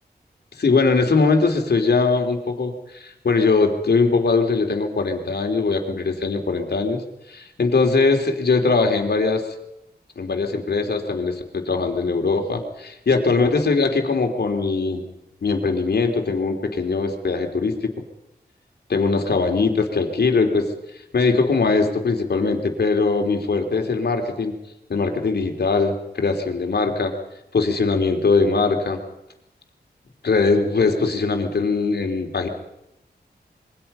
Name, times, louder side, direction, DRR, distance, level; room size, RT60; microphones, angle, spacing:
voice 1, 0.6-7.0 7.3-9.5 10.2-15.0 15.4-17.9 18.9-20.7 21.1-24.5 24.9-27.1 27.5-29.0 30.2-32.5, left 4 dB, 70° left, 4 dB, 3.3 m, -21 dB
27.0 x 23.0 x 5.6 m, 0.86 s
wide cardioid pair, 120°, 17 cm